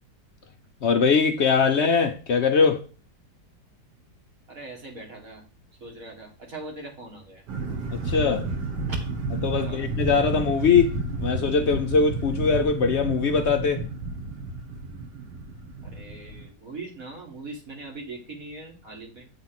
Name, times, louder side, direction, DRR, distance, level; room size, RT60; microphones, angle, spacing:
voice 1, 0.8-2.8 7.9-8.5 9.4-13.9, left 5 dB, 65° left, 0.6 m, -22 dB
voice 2, 4.5-5.4 5.8-7.4 8.9-9.1 9.6-9.9 15.8-19.3, right 2 dB, 55° right, 2.3 m, -40 dB
sound 1, 7.5-16.5, right 3 dB, 75° right, 1.8 m, -31 dB
7.9 x 3.6 x 5.9 m
omnidirectional pair, 1.8 m